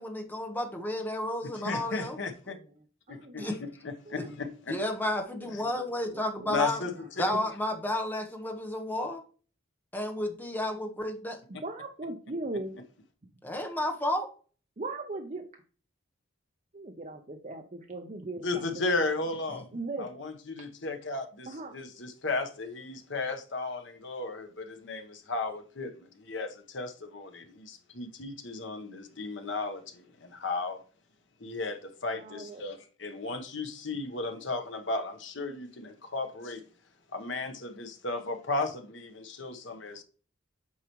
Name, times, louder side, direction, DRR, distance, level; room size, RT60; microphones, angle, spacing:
voice 1, 0.0-2.2 3.4-3.6 4.3-4.4 4.7-6.8 7.2-9.2 9.9-11.4 13.4-14.3, left 1 dB, 10° left, 1.0 m, -32 dB
voice 2, 1.5-2.6 3.1-3.5 3.8-4.7 5.5-5.6 6.5-7.2 18.4-19.6 20.0-30.8 31.4-36.6 37.1-40.0, left 3 dB, 65° left, 1.1 m, -35 dB
voice 3, 3.1-3.5 4.1-4.3 5.4-5.9 6.1-6.6 6.8-7.0 7.3-7.4 11.6-12.8 14.8-15.4 16.7-19.0 19.7-20.1 21.5-21.8 32.2-32.7, right 2 dB, 35° right, 0.6 m, -39 dB
8.4 x 4.8 x 3.1 m
head